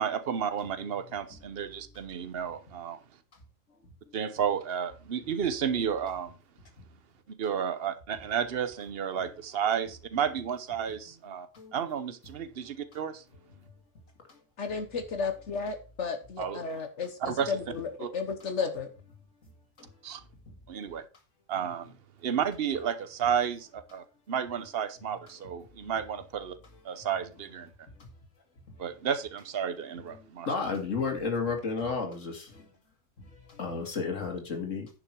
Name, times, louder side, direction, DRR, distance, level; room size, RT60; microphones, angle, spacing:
voice 1, 0.0-3.0 4.1-6.4 7.3-13.2 16.4-16.6 17.2-17.6 18.0-18.1 20.0-20.2 20.7-21.0 21.5-21.9 22.2-26.6 26.8-27.7 28.8-30.5, right 8 dB, 55° right, 1.1 m, -32 dB
voice 2, 14.6-18.9, left 5 dB, 65° left, 1.4 m, -33 dB
voice 3, 30.2-32.7 33.5-34.9, left 4 dB, 85° left, 2.5 m, -32 dB
10.5 x 6.1 x 4.5 m
omnidirectional pair, 1.3 m